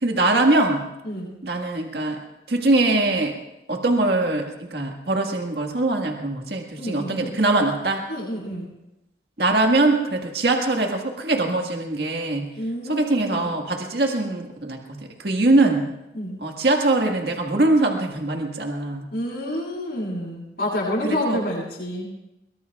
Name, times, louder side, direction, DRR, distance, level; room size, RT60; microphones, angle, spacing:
voice 1, 0.0-0.8 1.4-2.2 2.5-3.4 3.7-8.0 9.4-12.5 12.8-15.8 16.4-19.1 21.0-21.4, right 2 dB, 65° right, 2 dB, 1.7 m, -22 dB
voice 2, 6.7-7.4 8.1-8.7 12.6-13.5 16.1-16.4 19.1-22.1, left 1 dB, 60° left, -8 dB, 7.7 m, -28 dB
23.5 x 22.5 x 2.4 m, 0.91 s
head